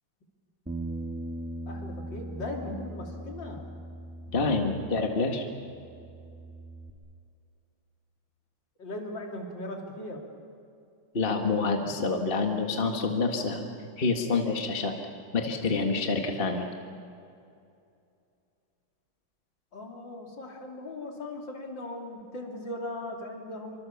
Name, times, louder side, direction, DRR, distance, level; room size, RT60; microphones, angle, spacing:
Bass guitar, 0.7-5.4 5.7-6.9, right 1 dB, 5° right, 2.1 m, -40 dB
voice 1, 1.7-3.6 8.8-10.2 19.7-23.8, left 1 dB, 60° left, 1 dB, 3.7 m, -38 dB
voice 2, 4.3-5.4 11.1-13.7 14.0-14.9 15.3-16.7, left 3 dB, 30° left, 3 dB, 1.8 m, -27 dB
26.5 x 25.0 x 7.2 m, 2.5 s
omnidirectional pair, 2.3 m